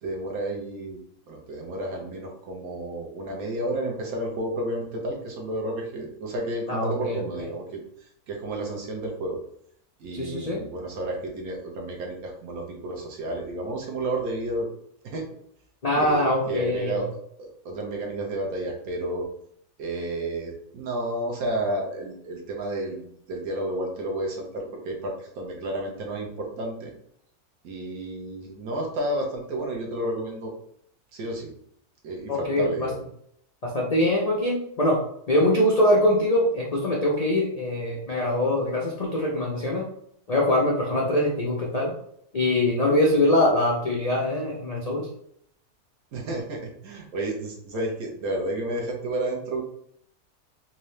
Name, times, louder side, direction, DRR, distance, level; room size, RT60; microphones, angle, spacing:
voice 1, 0.0-1.0 1.3-9.4 10.0-14.7 15.0-15.3 16.0-19.3 19.8-26.9 27.6-30.5 31.1-31.5 32.0-33.0 46.1-49.6, right 1 dB, 70° right, 0 dB, 1.3 m, -31 dB
voice 2, 6.7-7.2 10.1-10.6 15.8-17.0 32.3-32.9 33.6-35.0 35.3-39.9 40.3-41.9 42.3-45.1, left 1 dB, 75° left, -3 dB, 0.3 m, -23 dB
3.6 x 2.8 x 3.2 m, 0.69 s
omnidirectional pair, 1.7 m